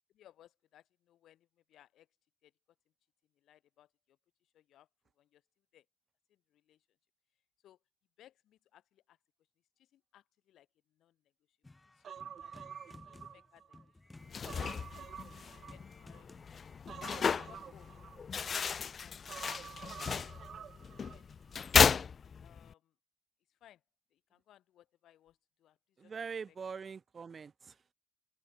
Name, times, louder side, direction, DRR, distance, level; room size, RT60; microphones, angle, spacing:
voice 1, 0.1-2.1 2.4-2.5 3.3-4.9 5.1-5.4 5.7-5.8 6.3-6.8 7.6-7.8 8.2-9.2 9.8-11.6 11.9-12.5 12.9-13.8 14.3-14.4 14.9-16.5 17.1-17.9 18.4-19.2 19.6-19.9 20.2-20.4 20.8-21.7 22.4-22.9 23.5-23.8 24.1-26.6, left 12 dB, 75° left, 6.7 m, -64 dB
sound 1, 11.6-16.8, left 2 dB, 15° left, 4.4 m, -56 dB
Human voice, 12.0-13.8 14.2-16.2 16.9-18.6 19.3-21.2 21.5-21.6, right 8 dB, 60° right, 2.6 m, -49 dB
sound 2, 14.2-22.7, left 6 dB, 45° left, 0.3 m, -33 dB
voice 2, 26.0-27.9, right 5 dB, 40° right, 1.0 m, -43 dB
open air
cardioid pair, 90°, 0 cm